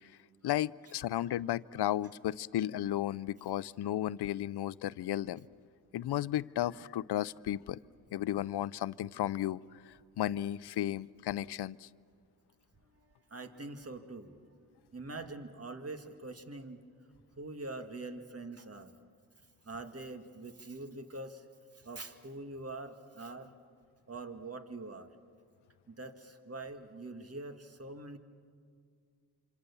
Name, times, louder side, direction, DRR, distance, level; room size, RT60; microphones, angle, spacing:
voice 1, 0.4-5.4 5.9-7.8 8.1-9.6 10.2-11.9, left 12 dB, 75° left, 20 dB, 0.6 m, -34 dB
voice 2, 13.0-14.3 14.9-16.8 17.4-18.9 19.6-21.5 21.7-23.5 24.1-25.1 25.9-28.2, right 2 dB, 35° right, 7 dB, 1.9 m, -44 dB
26.5 x 26.0 x 7.0 m, 2.2 s
cardioid pair, 55°, 39 cm